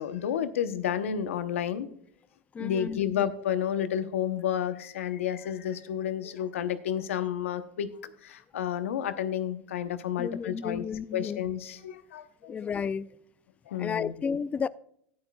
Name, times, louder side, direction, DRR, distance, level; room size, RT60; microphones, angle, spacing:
voice 1, 0.0-1.9 2.6-10.8 11.1-12.5 13.7-14.1, left 9 dB, 90° left, 0.9 m, -31 dB
voice 2, 2.5-3.3 10.2-11.4 12.4-13.1 13.8-14.7, left 6 dB, 20° left, 0.3 m, -32 dB
13.5 x 10.5 x 2.3 m
supercardioid pair, 110°, 7 cm